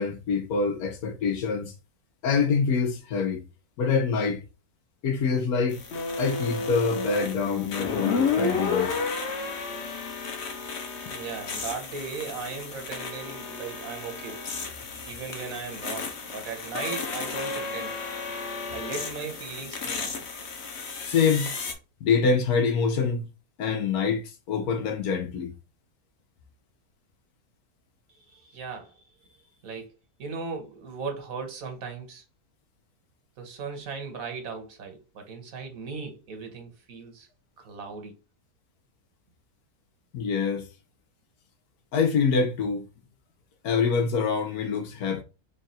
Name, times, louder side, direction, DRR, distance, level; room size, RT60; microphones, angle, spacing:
voice 1, 0.0-1.7 2.2-3.5 3.8-4.4 5.0-5.8 6.2-9.0 11.1-11.2 21.1-21.5 22.0-23.2 23.6-25.5 40.1-40.7 41.9-42.9 43.6-45.2, left 5 dB, 85° left, 1.3 m, -25 dB
sound 1, 5.7-21.7, left 4 dB, 55° left, 1.0 m, -32 dB
voice 2, 11.1-14.5 15.0-18.0 18.7-20.2 28.1-29.0 29.6-29.9 30.2-32.2 33.4-37.3 37.6-38.1, right 5 dB, 70° right, 1.4 m, -37 dB
3.8 x 2.4 x 4.0 m
omnidirectional pair, 1.6 m